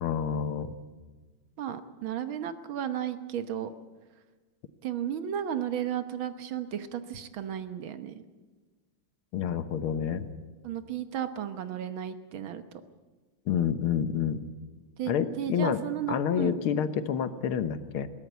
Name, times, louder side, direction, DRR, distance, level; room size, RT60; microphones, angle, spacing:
voice 1, 0.0-0.7 9.3-10.3 13.5-14.4 15.1-15.8 16.1-18.1, left 8 dB, 80° left, 11 dB, 1.9 m, -28 dB
voice 2, 1.6-3.7 4.8-8.2 10.6-12.8 15.0-16.5, right 10 dB, 70° right, 10 dB, 1.9 m, -34 dB
21.0 x 17.0 x 8.1 m, 1.3 s
omnidirectional pair, 2.3 m